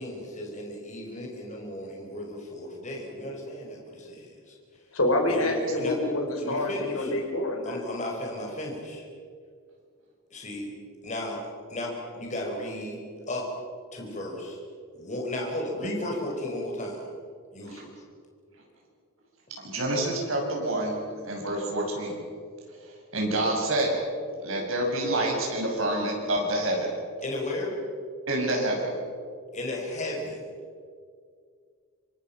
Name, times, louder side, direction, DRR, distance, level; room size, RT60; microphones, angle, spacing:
voice 1, 0.0-4.6 5.3-6.0 6.4-7.2 7.6-9.0 10.3-10.7 11.0-11.4 11.7-13.0 13.3-13.5 13.9-14.6 14.9-17.0 17.5-17.9 27.2-27.8 29.5-30.4, left 1 dB, 35° left, -1 dB, 5.2 m, -34 dB
voice 2, 4.9-7.8, left 1 dB, 85° left, 3 dB, 4.8 m, -27 dB
voice 3, 19.6-21.0 21.2-22.2 22.8-23.9 24.4-26.9 28.3-28.9, right 1 dB, 70° right, 0 dB, 6.8 m, -27 dB
26.5 x 24.5 x 6.0 m, 2.1 s
head